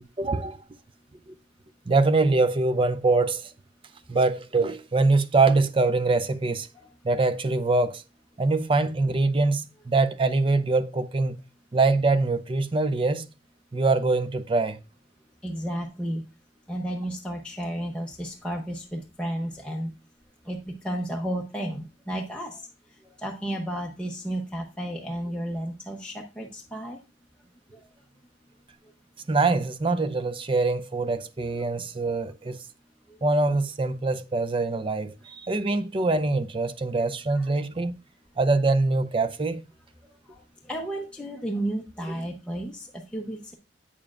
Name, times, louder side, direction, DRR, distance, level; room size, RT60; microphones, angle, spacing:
voice 1, 0.2-0.6 1.3-1.4 1.9-3.5 4.1-6.7 7.0-8.0 8.4-11.4 11.7-13.3 13.7-14.8 29.3-32.6 33.2-37.9 38.4-39.6, right 3 dB, 30° right, 0.5 m, -24 dB
voice 2, 15.4-16.2 16.7-19.9 20.5-22.6 23.2-27.0 31.5-31.6 37.3-37.5 40.3-40.4 40.7-43.5, right 1 dB, 5° left, 0.8 m, -32 dB
8.5 x 6.9 x 2.5 m
head